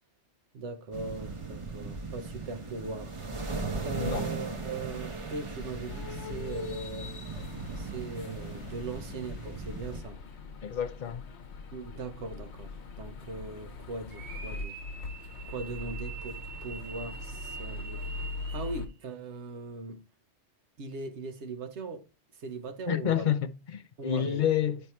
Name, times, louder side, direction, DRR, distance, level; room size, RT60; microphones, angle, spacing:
voice 1, 0.5-3.1 3.8-7.1 7.8-10.2 11.7-14.8 15.5-18.1 18.5-20.0 20.8-22.0 22.3-23.3 24.0-24.5, right 3 dB, 75° right, 1.3 m, -39 dB
sound 1, 0.9-10.0, right 3 dB, 30° right, 0.8 m, -38 dB
voice 2, 4.0-4.3 10.6-11.2 22.9-24.8, left 9 dB, 50° left, 0.6 m, -29 dB
sound 2, 5.9-18.9, left 3 dB, 70° left, 1.1 m, -41 dB
sound 3, 14.1-18.8, right 5 dB, 45° right, 1.1 m, -45 dB
9.5 x 3.4 x 4.3 m
omnidirectional pair, 1.2 m